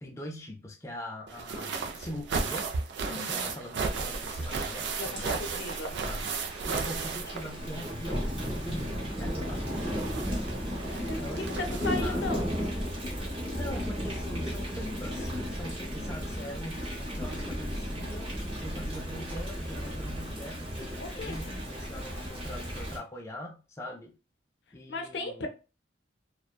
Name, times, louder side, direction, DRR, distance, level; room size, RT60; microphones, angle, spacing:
voice 1, 0.0-2.7 3.0-5.6 6.0-6.4 6.7-8.3 8.6-10.6 11.0-11.7 12.0-12.2 13.5-24.1 24.7-25.5, left 1 dB, 15° left, 0.3 m, -42 dB
sound 1, 1.3-8.0 8.3-12.3 13.3-13.4 13.8-13.9, right 4 dB, 70° right, 0.4 m, -35 dB
voice 2, 3.1-3.5 5.0-5.2 5.6-6.0 10.9-12.5 21.0-21.6 24.9-25.5, left 2 dB, 70° left, 0.5 m, -36 dB
Thunder / Rain, 3.9-23.0, equal, 30° right, 0.8 m, -35 dB
2.6 x 2.1 x 2.3 m
head